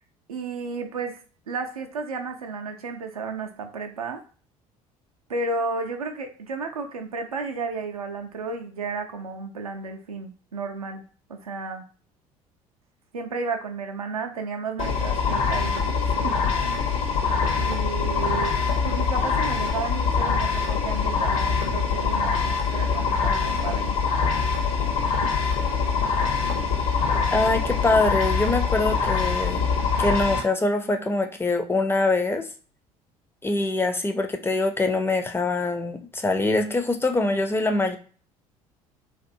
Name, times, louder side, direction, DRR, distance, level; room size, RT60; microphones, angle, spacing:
voice 1, 0.3-1.2 1.5-4.2 5.3-11.0 11.3-11.8 13.1-16.4 16.7-17.0 17.6-18.6 18.8-24.0, right 4 dB, 85° right, 4 dB, 0.4 m, -33 dB
sound 1, 14.8-30.4, left 5 dB, 70° left, 0.7 m, -24 dB
voice 2, 27.3-29.6 30.0-32.5 33.4-38.0, left 2 dB, 15° left, 6 dB, 0.4 m, -24 dB
2.5 x 2.3 x 2.6 m, 0.40 s
figure-of-eight pair, 55°, 18 cm